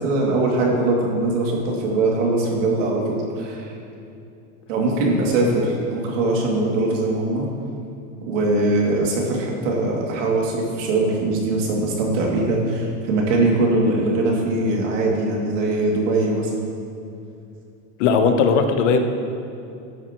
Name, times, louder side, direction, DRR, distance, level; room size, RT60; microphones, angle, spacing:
voice 1, 0.0-3.7 4.7-7.5 8.3-16.5, right 2 dB, 85° right, -2 dB, 2.5 m, -21 dB
voice 2, 18.0-19.0, left 5 dB, 75° left, 6 dB, 1.1 m, -17 dB
12.5 x 9.1 x 3.0 m, 2.7 s
supercardioid pair, 135°, 37 cm